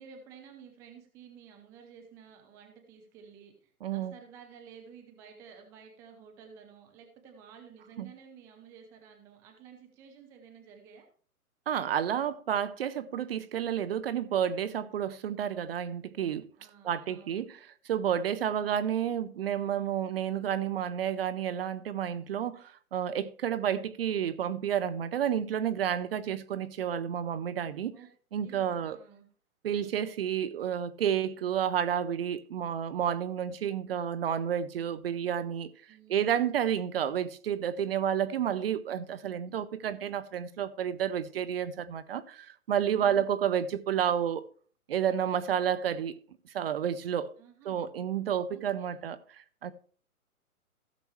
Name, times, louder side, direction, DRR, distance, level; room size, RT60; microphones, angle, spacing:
voice 1, 0.0-11.0 16.6-17.4 18.3-18.7 27.9-28.1 28.4-29.3 35.9-36.3 42.9-43.3 47.4-47.9 48.5-49.0, right 7 dB, 5° right, 0.5 m, -53 dB
voice 2, 3.8-4.1 8.0-8.1 11.7-16.5 16.8-17.6 17.8-27.9 28.3-29.0 29.6-35.7 36.1-44.4 44.9-46.2 46.4-47.3 47.6-49.7, right 9 dB, 40° right, 0.7 m, -30 dB
15.5 x 6.8 x 3.1 m
hypercardioid pair, 135°, 44 cm